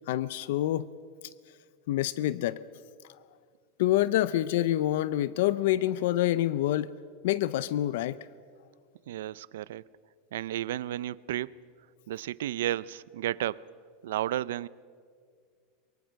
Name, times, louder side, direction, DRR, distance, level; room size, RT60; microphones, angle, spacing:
voice 1, 0.1-0.9 1.9-2.6 3.8-6.9 7.2-8.2, left 14 dB, 65° left, 0.5 m, -27 dB
voice 2, 9.1-9.8 10.3-11.6 12.1-13.7 14.0-14.7, right 13 dB, 90° right, 0.5 m, -32 dB
23.5 x 23.0 x 6.4 m
supercardioid pair, 175°, 0 cm